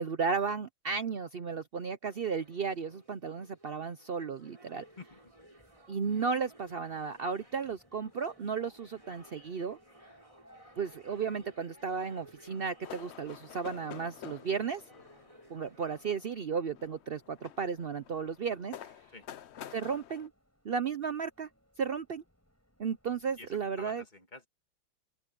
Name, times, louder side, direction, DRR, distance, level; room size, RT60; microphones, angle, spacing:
voice 1, 0.0-4.8 5.9-9.8 10.8-14.8 15.5-18.9 19.7-20.3 20.6-21.5 21.8-22.2 22.8-24.0, right 5 dB, 85° right, 0.5 m, -34 dB
sound 1, 2.1-16.4, right 1 dB, 15° right, 4.2 m, -58 dB
Subway metro underground, 4.8-23.5, equal, 5° left, 7.2 m, -66 dB
voice 2, 5.0-5.3 19.1-19.3 23.4-23.5 23.8-24.5, left 3 dB, 25° left, 2.1 m, -49 dB
sound 2, 12.8-20.3, left 10 dB, 85° left, 0.6 m, -49 dB
open air
omnidirectional pair, 2.0 m